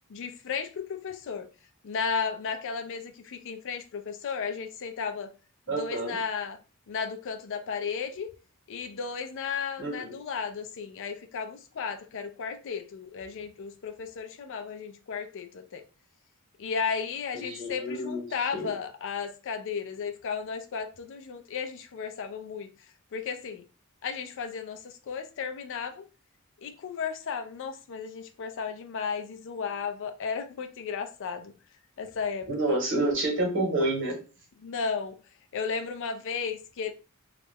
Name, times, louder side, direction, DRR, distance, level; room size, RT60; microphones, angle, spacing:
voice 1, 0.1-1.5 1.8-5.3 5.7-6.6 6.9-8.3 8.7-15.8 16.6-22.7 23.1-23.6 24.0-26.1 26.6-31.5 32.0-32.8 34.6-35.2 35.5-36.9, left 6 dB, 60° left, 0.4 m, -34 dB
voice 2, 5.7-6.2 9.8-10.2 17.3-18.7 32.5-34.2, right 2 dB, 55° right, 1.1 m, -29 dB
2.3 x 2.1 x 3.3 m
head